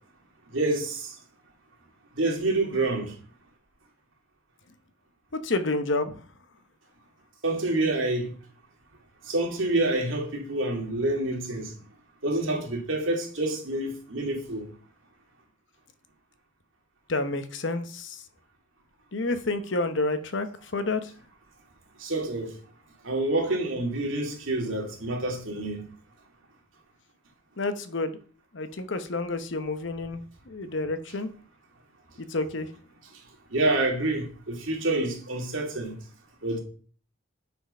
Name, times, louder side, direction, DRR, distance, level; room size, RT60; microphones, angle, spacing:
voice 1, 0.5-1.1 2.2-3.1 7.4-8.3 9.2-11.7 12.2-14.7 22.0-22.6 23.0-25.8 33.5-35.9 36.4-36.6, right 2 dB, 70° right, 2.4 m, -27 dB
voice 2, 5.3-6.3 17.1-18.2 19.1-21.1 27.6-28.2 28.5-31.3 32.2-32.7, left 2 dB, 65° left, 0.9 m, -29 dB
9.2 x 4.6 x 5.4 m
head